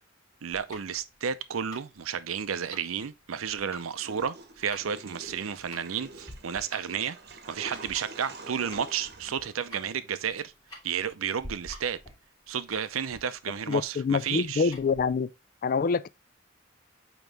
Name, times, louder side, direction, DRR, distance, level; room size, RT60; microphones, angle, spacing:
voice 1, 0.4-7.2 7.5-10.5 10.8-12.0 12.5-14.7, right 7 dB, 90° right, 0.6 m, -32 dB
Tick-tock, 0.5-15.1, left 1 dB, 20° left, 2.9 m, -50 dB
Water / Toilet flush, 4.0-10.2, right 3 dB, 50° right, 0.9 m, -47 dB
voice 2, 13.7-15.3 15.6-16.1, left 5 dB, 45° left, 0.3 m, -26 dB
9.1 x 3.0 x 3.4 m
head